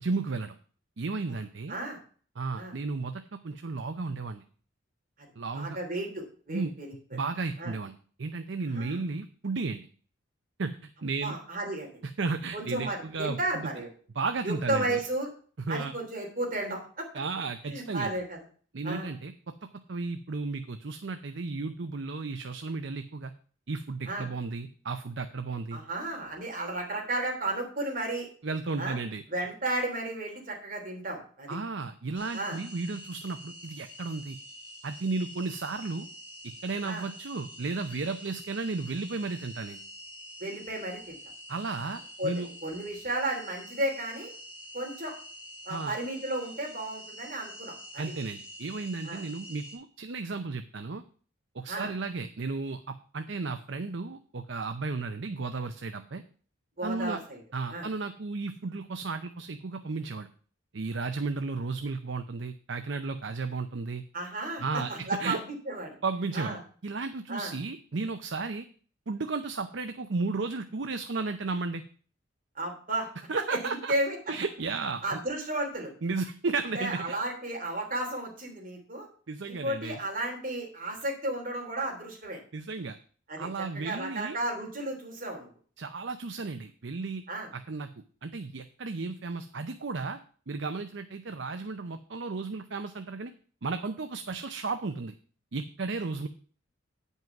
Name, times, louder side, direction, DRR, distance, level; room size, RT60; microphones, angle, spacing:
voice 1, 0.0-0.6 1.0-1.8 2.4-4.4 5.4-5.8 6.5-6.7 7.1-9.9 10.6-11.4 12.0-13.7 14.2-15.0 15.7-15.9 17.1-18.1 18.7-19.5 19.9-23.3 23.7-25.8 28.4-29.2 31.5-34.4 34.8-36.1 36.6-39.8 41.5-42.5 45.7-45.9 48.0-51.0 51.5-56.2 56.8-57.2 57.5-60.3 60.7-64.0 64.6-65.4 66.0-68.7 69.1-71.8 73.3-73.9 74.3-75.2 76.0-77.2 79.3-80.0 82.5-83.0 83.4-84.4 85.8-87.2 87.5-87.9 88.2-90.2 90.5-93.3 93.6-95.1 95.5-96.3, right 3 dB, 60° right, 8 dB, 0.6 m, -34 dB
voice 2, 5.5-7.2 7.6-7.7 8.7-9.0 11.2-11.9 12.5-13.9 14.4-15.3 15.7-17.0 17.6-18.4 18.8-19.1 24.1-24.3 25.7-28.3 28.8-29.0 29.3-31.6 32.3-32.6 36.8-37.0 40.4-41.2 42.2-44.3 44.7-45.1 45.6-48.0 49.0-49.2 51.7-51.9 56.8-57.4 57.7-57.9 64.1-64.6 64.9-65.9 66.3-66.6 67.3-67.5 72.5-73.1 73.5-74.2 75.0-75.9 76.7-79.1 79.4-82.4 83.3-83.5 83.7-85.5 87.3-87.5, right 1 dB, 40° right, 0 dB, 3.1 m, -33 dB
sound 1, 32.1-49.8, equal, 25° left, 4.5 m, -46 dB
9.2 x 5.5 x 5.9 m, 0.42 s
head